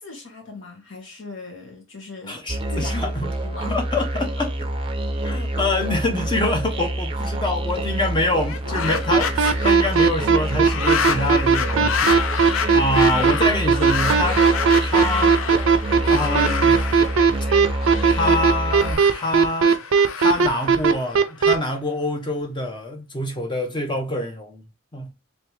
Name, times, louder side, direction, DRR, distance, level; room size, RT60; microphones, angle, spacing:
voice 1, 0.0-2.4 2.7-3.0 3.4-3.8, left 3 dB, 70° left, 1.4 m, -38 dB
voice 2, 2.3-3.3 3.7-4.5 5.2-14.4 14.8-15.4 16.1-16.8 18.0-19.8 20.1-24.6 24.9-25.1, left 2 dB, 25° left, 0.6 m, -26 dB
Musical instrument, 2.5-18.9, right 1 dB, 25° right, 0.5 m, -27 dB
sound 1, 8.4-21.6, left 6 dB, 85° left, 0.5 m, -29 dB
sound 2, 9.1-21.5, right 6 dB, 85° right, 0.4 m, -16 dB
3.2 x 2.9 x 3.1 m
head